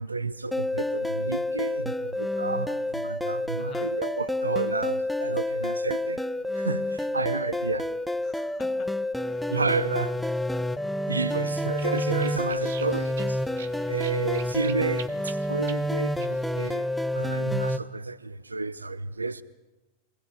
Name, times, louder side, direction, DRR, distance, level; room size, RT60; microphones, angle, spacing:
voice 1, 0.0-6.2 6.6-7.9 9.5-10.2 11.1-13.4 13.9-16.9 17.1-19.4, right 3 dB, 80° right, 0.8 m, -31 dB
sound 1, 0.5-17.8, left 1 dB, ahead, 0.9 m, -29 dB
voice 2, 3.6-4.0 8.2-9.4 11.3-11.7, left 8 dB, 30° left, 1.5 m, -48 dB
sound 2, 11.5-16.8, right 8 dB, 60° right, 1.6 m, -46 dB
27.0 x 21.0 x 7.7 m
figure-of-eight pair, 90°, 0 cm